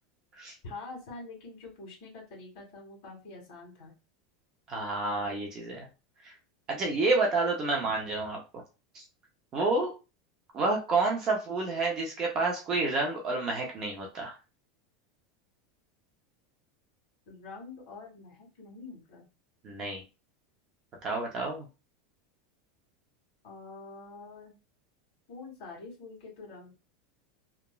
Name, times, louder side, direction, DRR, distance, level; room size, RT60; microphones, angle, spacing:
voice 1, 0.6-3.9 17.2-19.3 23.4-24.6 25.3-26.7, left 3 dB, 45° left, -2 dB, 1.6 m, -46 dB
voice 2, 4.7-5.9 6.2-6.3 6.7-8.4 8.9-9.0 9.5-9.9 10.5-14.3 19.6-20.0 21.0-21.7, right 3 dB, 25° right, 0 dB, 0.6 m, -29 dB
2.9 x 2.3 x 2.2 m, 0.30 s
supercardioid pair, 175°, 2 cm